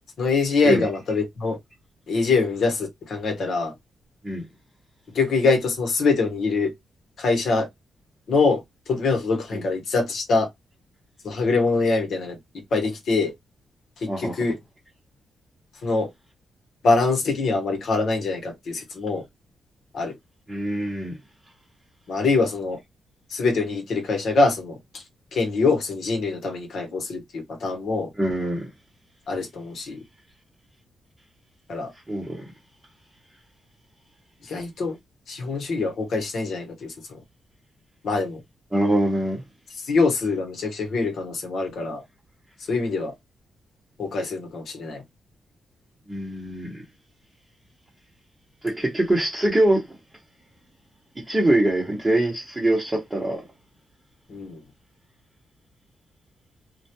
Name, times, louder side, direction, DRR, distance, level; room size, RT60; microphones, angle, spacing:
voice 1, 0.2-1.6 2.1-3.7 5.1-6.7 7.2-7.7 8.3-8.6 8.9-10.5 11.2-13.3 14.0-14.6 15.8-16.1 16.8-19.2 19.9-20.1 22.1-22.8 23.3-25.0 25.3-28.1 29.3-30.0 31.7-31.9 34.4-35.0 35.3-37.2 38.0-38.4 39.8-42.0 42.7-43.1 44.0-45.0 54.3-54.6, left 3 dB, 70° left, 0.9 m, -24 dB
voice 2, 14.1-14.4 20.5-21.2 28.2-28.7 32.1-32.5 38.7-39.4 46.1-46.8 48.6-49.9 51.2-53.4, right 1 dB, 15° right, 0.9 m, -23 dB
2.2 x 2.1 x 2.8 m
cardioid pair, 90°, 0 cm